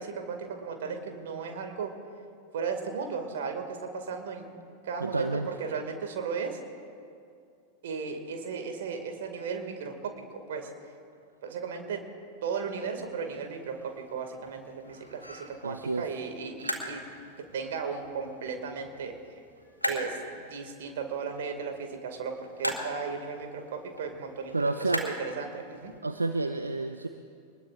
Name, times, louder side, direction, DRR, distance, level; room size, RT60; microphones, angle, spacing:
voice 1, 0.0-1.9 2.5-4.5 4.8-6.6 7.8-10.1 10.5-10.7 11.4-12.0 12.4-17.0 17.5-19.1 19.8-22.3 22.6-24.5 24.8-25.9, right 5 dB, 60° right, 5 dB, 2.2 m, -35 dB
voice 2, 5.0-5.5 15.6-16.1 24.5-25.0 26.0-27.1, right 3 dB, 80° right, 8 dB, 0.5 m, -29 dB
sound 1, 12.8-26.0, equal, 90° left, 2.2 m, -41 dB
24.0 x 20.5 x 2.5 m, 2.4 s
figure-of-eight pair, 90°, 0 cm